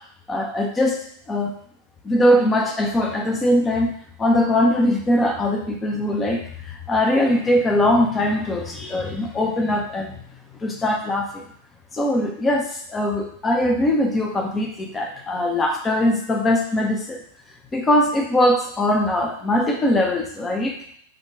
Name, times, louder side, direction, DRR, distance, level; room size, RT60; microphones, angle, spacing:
voice 1, 0.3-1.5 2.0-10.2 10.5-11.4 11.9-17.2 17.7-20.8, left 1 dB, 15° left, 2 dB, 0.6 m, -21 dB
3.8 x 2.3 x 3.3 m, 0.62 s
figure-of-eight pair, 90°, 0 cm